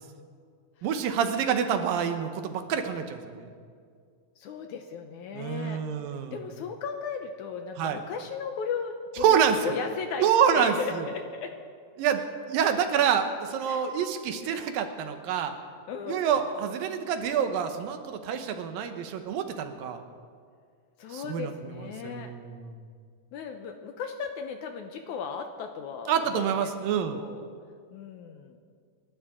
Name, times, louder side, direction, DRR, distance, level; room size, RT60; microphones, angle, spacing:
voice 1, 0.8-3.5 5.3-6.4 7.8-8.0 9.2-9.8 10.2-11.1 12.0-12.2 12.5-15.5 16.1-20.0 21.1-22.8 26.1-27.2, right 8 dB, 80° right, 7 dB, 2.7 m, -27 dB
voice 2, 4.4-5.8 6.3-11.5 13.7-13.8 14.4-14.6 15.9-16.5 21.0-22.3 23.3-26.7 27.1-27.4 27.9-28.6, left 6 dB, 75° left, 5 dB, 2.0 m, -36 dB
29.0 x 12.0 x 3.7 m, 2.1 s
omnidirectional pair, 4.1 m